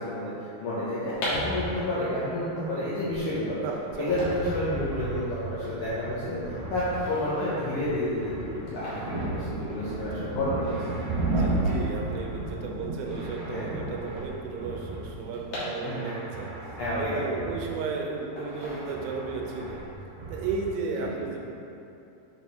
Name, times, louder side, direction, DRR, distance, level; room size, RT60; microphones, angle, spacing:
voice 1, 0.0-3.6 4.0-10.8 13.5-13.7 15.8-16.1 16.8-17.3 21.0-21.1, left 1 dB, 85° left, -11 dB, 1.7 m, -30 dB
sound 1, 0.8-13.0 13.2-13.3 13.5-16.4 16.8-17.8 18.4-19.4 19.7-20.0, left 1 dB, 60° left, 2.1 m, -40 dB
sound 2, 1.3-3.5 3.8-15.3 15.7-18.0 18.4-20.7, right 1 dB, 55° right, 1.8 m, -40 dB
voice 2, 3.6-4.4 10.2-10.4 11.2-21.4, right 4 dB, 90° right, 0 dB, 3.0 m, -34 dB
sound 3, 7.9-15.4, right 2 dB, 70° right, 2.1 m, -32 dB
7.5 x 4.2 x 3.5 m, 2.8 s
omnidirectional pair, 5.1 m